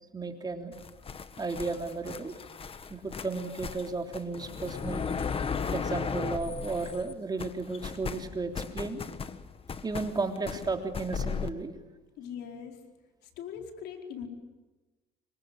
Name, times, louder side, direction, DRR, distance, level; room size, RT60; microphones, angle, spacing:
voice 1, 0.1-0.7 1.4-2.3 2.9-5.0 5.7-9.0 9.8-11.7, right 3 dB, 25° right, 4 dB, 3.4 m, -34 dB
sound 1, 0.7-7.1 7.4-11.5, left 6 dB, 35° left, 1.6 m, -36 dB
voice 2, 12.2-12.8 13.2-14.3, left 8 dB, 75° left, 3 dB, 4.6 m, -41 dB
27.0 x 24.5 x 8.9 m, 1.2 s
cardioid pair, 110°, 17 cm